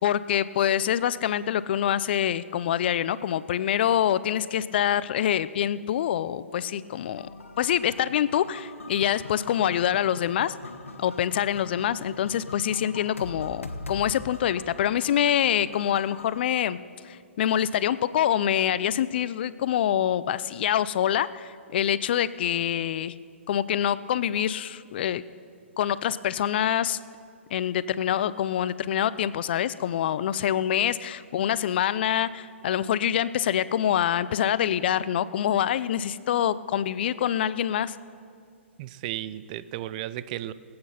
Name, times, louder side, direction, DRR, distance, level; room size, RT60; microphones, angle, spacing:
voice 1, 0.0-7.3 7.6-10.5 11.0-16.8 17.0-23.1 23.5-25.2 25.8-27.0 27.5-38.0, left 10 dB, 50° left, 16 dB, 0.5 m, -25 dB
sound 1, 7.2-16.4, left 3 dB, 85° left, 1.3 m, -42 dB
voice 2, 38.8-40.5, right 13 dB, 35° right, 16 dB, 0.5 m, -34 dB
19.0 x 8.6 x 5.8 m, 2.2 s
hypercardioid pair, 130°, 7 cm